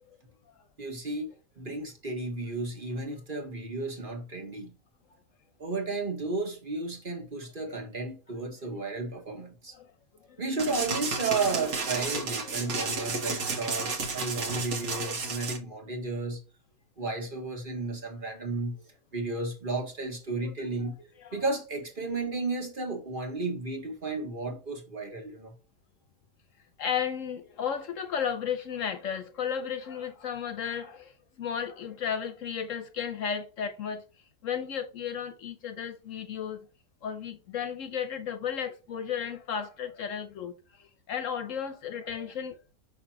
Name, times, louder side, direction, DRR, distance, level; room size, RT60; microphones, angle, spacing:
voice 1, 0.8-1.3 1.6-4.8 5.6-9.7 10.4-16.4 17.0-18.8 19.1-21.0 21.3-25.5, right 3 dB, 35° right, 1.5 m, -33 dB
sound 1, 10.6-15.6, right 4 dB, 55° right, 1.5 m, -32 dB
voice 2, 26.8-31.1 31.4-34.0 34.4-36.6 37.0-40.5 40.8-42.6, left 7 dB, 65° left, 1.1 m, -33 dB
5.9 x 5.8 x 2.9 m
omnidirectional pair, 1.6 m